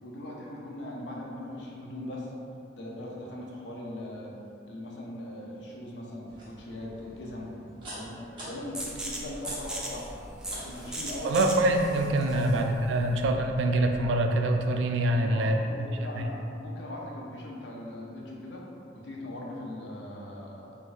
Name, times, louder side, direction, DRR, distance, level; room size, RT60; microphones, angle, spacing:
voice 1, 0.0-2.3 2.7-4.3 4.7-7.5 7.9-11.4 12.2-12.5 12.8-13.0 15.1-18.7 18.9-20.7, left 1 dB, 70° left, -3 dB, 0.6 m, -40 dB
sound 1, 6.3-11.6, equal, 30° right, 1.1 m, -47 dB
sound 2, 8.7-14.2, right 1 dB, 5° right, 0.3 m, -39 dB
voice 2, 11.2-15.7 16.2-16.3, right 1 dB, 90° right, 4 dB, 0.3 m, -25 dB
4.0 x 2.5 x 2.4 m, 2.7 s
head